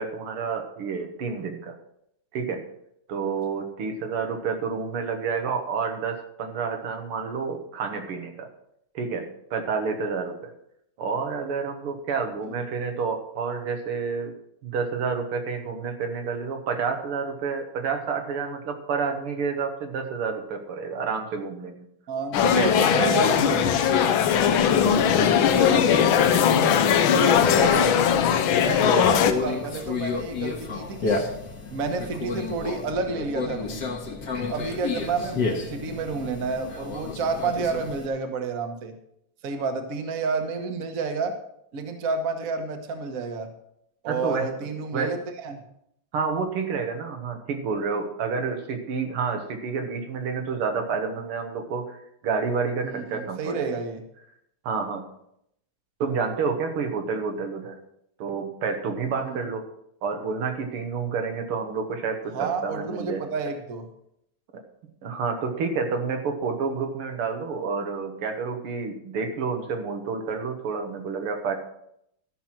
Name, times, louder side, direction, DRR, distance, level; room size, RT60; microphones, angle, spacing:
voice 1, 0.0-1.7 2.3-2.6 3.1-8.5 8.9-10.5 11.0-14.3 14.6-21.9 22.6-22.7 25.1-25.7 44.0-44.5 44.9-45.1 46.1-53.8 54.6-55.0 56.0-57.8 58.2-59.6 60.0-63.3 65.0-71.5, right 5 dB, 85° right, 4 dB, 2.2 m, -29 dB
voice 2, 22.1-23.8 25.5-26.7 27.1-28.0 28.5-31.2 31.7-33.9 34.4-38.9 39.4-41.3 41.7-43.5 44.0-45.6 52.8-54.0 59.1-59.4 62.3-63.9, right 4 dB, 45° right, 5 dB, 1.4 m, -30 dB
sound 1, 22.3-29.3, left 8 dB, 70° left, 1.5 m, -19 dB
Conversation, 29.2-38.1, left 4 dB, 55° left, 2.0 m, -31 dB
13.5 x 5.9 x 6.0 m, 0.76 s
omnidirectional pair, 2.4 m